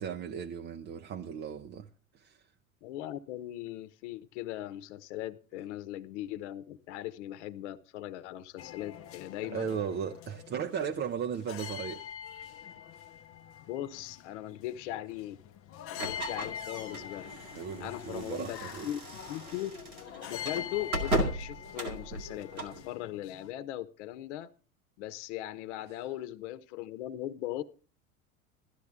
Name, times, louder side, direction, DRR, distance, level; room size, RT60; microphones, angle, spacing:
voice 1, 0.0-2.4 9.4-12.5 17.5-18.9, right 7 dB, 25° right, 0.6 m, -37 dB
voice 2, 2.8-9.7 13.7-15.4 15.9-17.3 17.8-18.6 18.8-19.7 20.3-24.5 25.0-27.6, left 13 dB, 55° left, 1.0 m, -39 dB
sound 1, 8.6-23.5, left 9 dB, 35° left, 0.8 m, -45 dB
sound 2, 16.0-22.8, right 1 dB, 90° right, 2.0 m, -36 dB
14.5 x 12.0 x 3.5 m
figure-of-eight pair, 80°, 42 cm